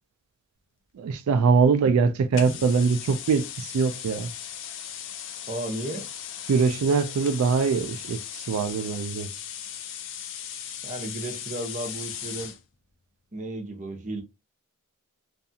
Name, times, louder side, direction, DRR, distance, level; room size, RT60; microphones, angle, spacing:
voice 1, 1.0-4.3 6.5-9.3, right 5 dB, 90° right, 0.3 m, -23 dB
sound 1, 2.3-12.6, left 9 dB, 60° left, 0.4 m, -37 dB
voice 2, 5.5-6.1 10.8-12.5 13.3-14.2, right 2 dB, 35° right, 0.7 m, -34 dB
2.6 x 2.3 x 2.6 m
head